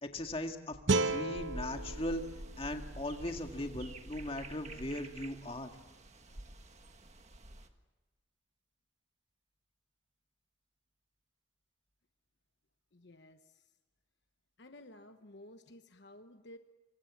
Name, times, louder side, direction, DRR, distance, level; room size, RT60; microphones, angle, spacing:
voice 1, 0.0-2.2 2.6-5.7, left 1 dB, 30° left, 4 dB, 1.8 m, -39 dB
sound 1, 0.9-4.0, right 3 dB, 70° right, 1.0 m, -35 dB
sound 2, 1.3-7.7, right 1 dB, 35° right, 1.6 m, -48 dB
voice 2, 12.9-13.6 14.6-16.6, left 1 dB, 60° left, 7 dB, 1.1 m, -54 dB
26.0 x 24.5 x 7.3 m, 1.2 s
head